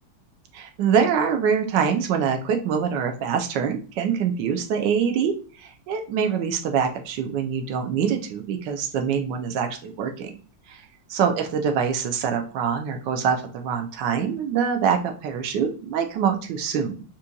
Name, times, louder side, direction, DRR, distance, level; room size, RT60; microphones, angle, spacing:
voice 1, 0.5-5.3 5.6-10.3 10.7-10.8 11.1-17.0, right 7 dB, 70° right, 5 dB, 1.4 m, -24 dB
6.5 x 3.0 x 2.3 m, 0.38 s
omnidirectional pair, 2.1 m